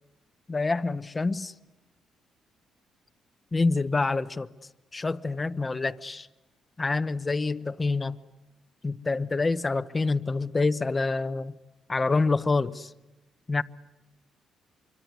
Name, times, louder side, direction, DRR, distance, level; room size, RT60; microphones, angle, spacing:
voice 1, 0.5-1.5 3.5-4.5 4.9-6.3 6.8-8.2 8.8-11.5 11.9-12.9 13.5-13.6, left 3 dB, 25° left, 0.9 m, -27 dB
25.0 x 24.5 x 9.7 m
cardioid pair, 90°, 0 cm